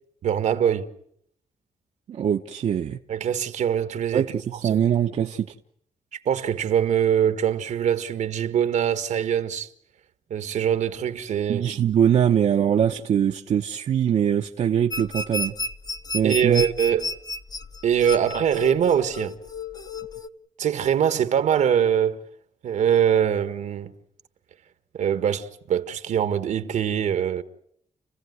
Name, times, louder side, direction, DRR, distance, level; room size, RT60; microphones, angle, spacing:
voice 1, 0.2-0.9 3.1-4.3 4.7-4.8 6.1-9.7 10.3-11.7 16.2-17.1 17.8-19.4 20.6-22.2 22.6-23.9 24.9-27.4, right 9 dB, 85° right, 1.6 m, -23 dB
voice 2, 2.1-3.0 4.1-5.5 11.5-15.5 16.1-16.6, right 9 dB, 65° right, 0.9 m, -22 dB
sound 1, 14.9-20.3, left 2 dB, 35° left, 0.9 m, -32 dB
30.0 x 15.5 x 9.5 m
cardioid pair, 105°, 12 cm